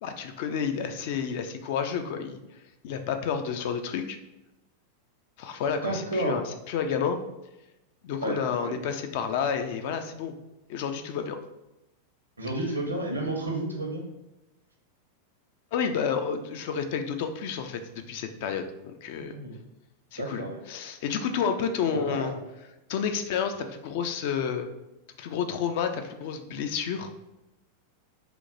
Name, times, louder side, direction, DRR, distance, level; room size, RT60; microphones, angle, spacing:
voice 1, 0.0-2.4 2.8-4.2 5.4-7.2 8.0-10.3 10.7-11.4 15.7-17.8 18.1-19.3 20.1-22.3 22.9-24.7 25.2-27.1, left 7 dB, 50° left, 7 dB, 0.3 m, -30 dB
voice 2, 5.8-6.4 8.2-8.7 12.4-14.1 19.2-19.6 20.2-20.6 21.9-22.4, right 1 dB, 80° right, 2 dB, 0.6 m, -31 dB
2.9 x 2.1 x 3.7 m, 0.94 s
figure-of-eight pair, 90°, 0 cm